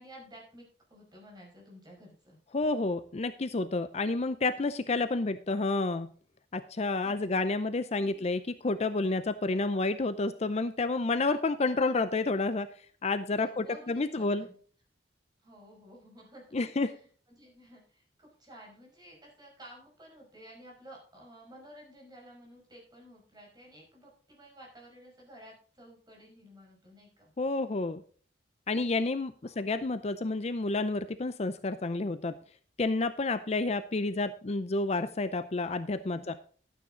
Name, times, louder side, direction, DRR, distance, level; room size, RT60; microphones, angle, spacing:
voice 1, 0.0-2.4 7.0-7.3 8.0-8.3 11.3-11.4 13.3-14.6 15.4-27.3 29.4-29.6 36.1-36.3, equal, 25° right, -1 dB, 5.6 m, -53 dB
voice 2, 2.5-6.1 6.5-12.7 13.0-14.5 16.5-16.9 27.4-28.0 28.7-32.4 32.8-36.4, left 3 dB, 35° left, 11 dB, 0.5 m, -30 dB
12.0 x 9.3 x 3.8 m, 0.43 s
head